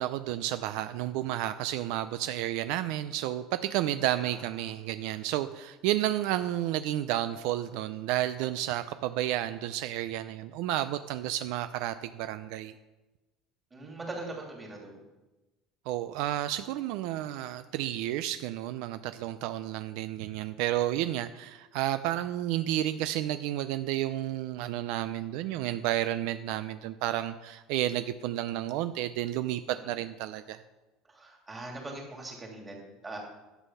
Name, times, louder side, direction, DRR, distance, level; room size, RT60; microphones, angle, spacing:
voice 1, 0.0-12.7 15.9-30.6, right 13 dB, 70° right, 11 dB, 0.5 m, -31 dB
voice 2, 4.1-4.7 13.7-15.0 29.7-30.0 31.1-33.2, right 2 dB, 15° right, -1 dB, 2.8 m, -42 dB
11.0 x 8.3 x 5.6 m, 1.1 s
cardioid pair, 155°, 0 cm